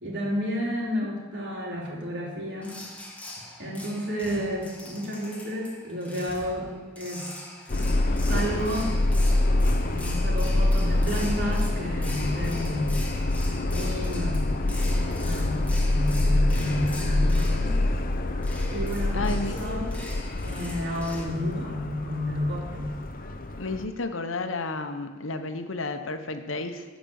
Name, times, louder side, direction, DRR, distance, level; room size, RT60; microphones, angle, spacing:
voice 1, 0.0-2.8 3.6-6.7 7.0-7.3 8.3-9.0 9.9-12.9 13.7-14.8 15.2-17.7 18.7-20.0 20.4-23.0, equal, 60° right, -3 dB, 3.1 m, -31 dB
sound 1, 2.6-21.2, left 2 dB, 5° left, 1.4 m, -43 dB
Subway metro underground, 7.7-23.8, left 2 dB, 45° left, 0.7 m, -26 dB
voice 2, 19.1-19.6 23.6-26.8, left 3 dB, 80° left, 7 dB, 1.0 m, -31 dB
15.0 x 5.2 x 7.0 m, 1.3 s
head